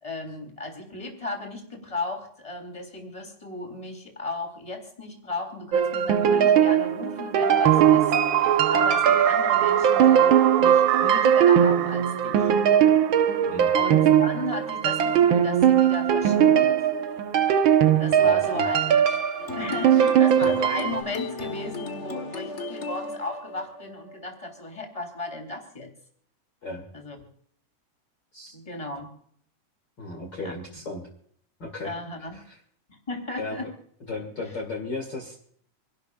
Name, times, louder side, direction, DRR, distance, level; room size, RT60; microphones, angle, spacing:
voice 1, 0.0-12.5 13.7-16.7 18.0-18.8 19.5-25.9 26.9-27.2 28.5-29.1 30.4-30.5 31.8-32.4 32.9-33.7, left 2 dB, 10° left, 4 dB, 3.2 m, -35 dB
sound 1, 5.7-21.0, right 9 dB, 85° right, 1.1 m, -20 dB
sound 2, 7.4-13.3, right 10 dB, 65° right, 1.7 m, -24 dB
voice 2, 18.1-18.6 26.6-26.8 28.3-28.5 30.0-31.1 31.6-31.9 32.3-32.6 33.4-33.7 34.1-35.4, left 2 dB, 35° left, 1 dB, 2.5 m, -35 dB
sound 3, 19.4-24.9, left 3 dB, 75° left, 0.6 m, -36 dB
27.5 x 12.0 x 2.4 m, 0.63 s
omnidirectional pair, 3.7 m